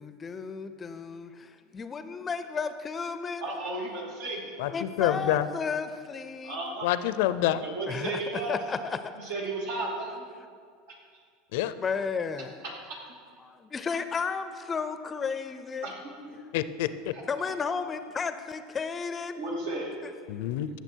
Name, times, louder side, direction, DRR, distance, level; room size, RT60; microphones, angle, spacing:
voice 1, 0.0-3.4 4.7-6.6 7.9-8.2 8.5-9.0 11.8-12.5 13.4-15.9 17.3-19.3, left 5 dB, 25° left, 11 dB, 0.5 m, -33 dB
voice 2, 3.4-4.4 6.4-6.9 7.6-8.6 9.2-10.2 10.9-11.0 12.6-12.7 13.1-13.2 15.8-16.4 17.1-17.5 19.3-20.0, right 2 dB, 80° right, -2 dB, 2.7 m, -34 dB
voice 3, 4.6-5.5 6.8-7.6 11.5-11.7 16.5-17.1 20.3-20.7, left 13 dB, 75° left, 13 dB, 0.5 m, -27 dB
15.5 x 6.7 x 4.5 m, 2.1 s
supercardioid pair, 115°, 0 cm